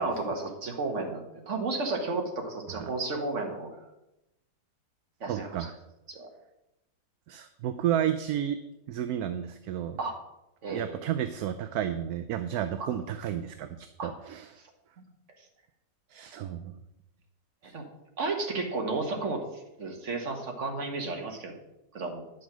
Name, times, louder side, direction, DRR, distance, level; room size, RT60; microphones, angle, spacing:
voice 1, 0.0-3.8 5.2-5.6 6.1-6.3 10.0-10.2 10.6-11.0 14.0-14.1 17.7-17.8 18.2-21.6 21.9-22.2, right 3 dB, 45° right, 2 dB, 1.8 m, -32 dB
voice 2, 5.3-5.8 7.3-8.6 8.9-10.0 10.7-14.6 16.1-16.8 17.6-17.7, right 10 dB, 70° right, 9 dB, 1.0 m, -32 dB
9.6 x 6.3 x 6.1 m, 0.90 s
omnidirectional pair, 1.8 m